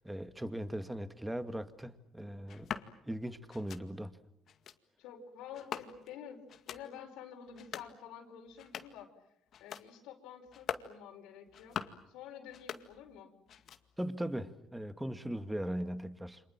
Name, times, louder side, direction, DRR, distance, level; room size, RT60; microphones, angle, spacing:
voice 1, 0.0-2.7 3.1-4.1 14.0-16.4, right 1 dB, 5° right, 2.0 m, -39 dB
sound 1, 2.5-2.9 3.5-3.8 4.5-4.8 5.5-6.2 6.5-6.8 7.5-7.9 8.5-9.0 9.5-9.9 10.5-10.9 11.5-12.0 12.5-13.2 13.5-14.1, left 8 dB, 60° left, 2.1 m, -43 dB
voice 2, 5.0-9.1 9.6-11.8 12.1-13.3, left 8 dB, 85° left, 5.1 m, -49 dB
29.5 x 27.0 x 7.5 m
cardioid pair, 90°, 0 cm